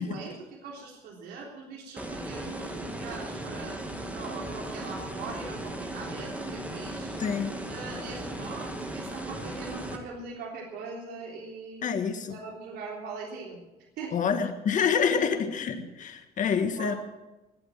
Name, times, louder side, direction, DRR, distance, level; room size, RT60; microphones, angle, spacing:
voice 1, 0.0-7.2 7.7-11.8 12.1-13.6 14.0-14.2 15.1-15.2 16.8-17.0, right 4 dB, 75° right, -3 dB, 3.6 m, -41 dB
sound 1, 2.0-10.0, right 1 dB, 10° right, 2.3 m, -37 dB
voice 2, 7.2-7.5 11.8-12.3 14.1-16.9, left 6 dB, 50° left, 7 dB, 1.7 m, -27 dB
21.0 x 8.1 x 7.6 m, 1.1 s
cardioid pair, 110°, 17 cm